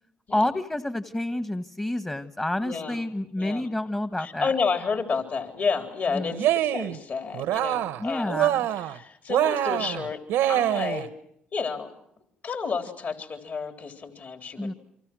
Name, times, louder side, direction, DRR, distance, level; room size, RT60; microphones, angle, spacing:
voice 1, 0.3-4.5 6.1-6.4 8.0-8.6 14.6-14.7, left 1 dB, 15° left, 10 dB, 1.4 m, -29 dB
voice 2, 2.6-3.0 3.4-3.7 4.2-10.2 10.5-11.1 11.5-11.9 12.4-14.7, left 5 dB, 50° left, 5 dB, 3.9 m, -31 dB
Cheering, 6.3-7.0 7.3-8.0 8.3-9.0 9.3-11.1, right 12 dB, 85° right, 1.1 m, -25 dB
29.5 x 25.5 x 6.2 m, 0.72 s
supercardioid pair, 70°, 4 cm